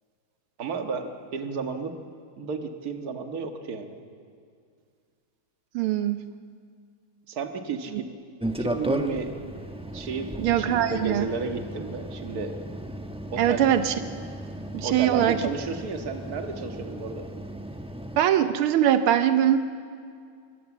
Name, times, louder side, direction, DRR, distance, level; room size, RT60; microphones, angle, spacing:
voice 1, 0.6-2.0 2.4-4.0 7.3-8.1 8.6-9.3 9.9-12.6 13.3-13.7 14.8-17.3, right 5 dB, 50° right, 5 dB, 1.9 m, -32 dB
voice 2, 5.7-6.2 10.4-11.3 13.4-13.9 14.7-15.4 18.2-19.6, right 10 dB, 85° right, 10 dB, 1.7 m, -22 dB
sound 1, 8.4-18.2, right 1 dB, 5° right, 0.6 m, -35 dB
26.5 x 23.0 x 7.3 m, 2.2 s
omnidirectional pair, 2.3 m